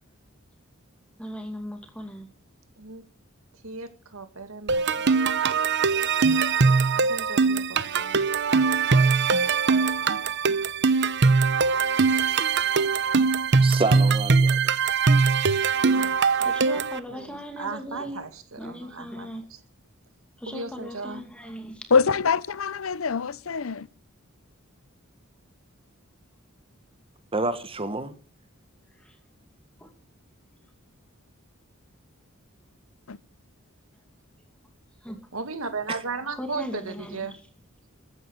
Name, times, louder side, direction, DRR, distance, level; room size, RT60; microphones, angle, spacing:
voice 1, 1.2-2.3 15.3-15.4 16.4-18.2 18.6-19.5 20.4-21.9 29.0-29.2 29.8-29.9 35.0-35.2 36.4-37.4, equal, 5° left, 2.4 m, -38 dB
voice 2, 3.6-5.0 6.9-8.3 15.8-16.2 17.1-19.3 20.5-21.2 35.3-37.3, right 4 dB, 75° right, 2.2 m, -36 dB
sound 1, 4.7-17.0, right 4 dB, 55° right, 0.9 m, -21 dB
voice 3, 13.6-14.6 15.2-15.3 27.3-28.1 35.9-36.0, right 3 dB, 25° right, 1.7 m, -28 dB
voice 4, 21.9-23.9 33.1-33.2, left 5 dB, 70° left, 0.7 m, -24 dB
15.0 x 10.0 x 6.5 m
head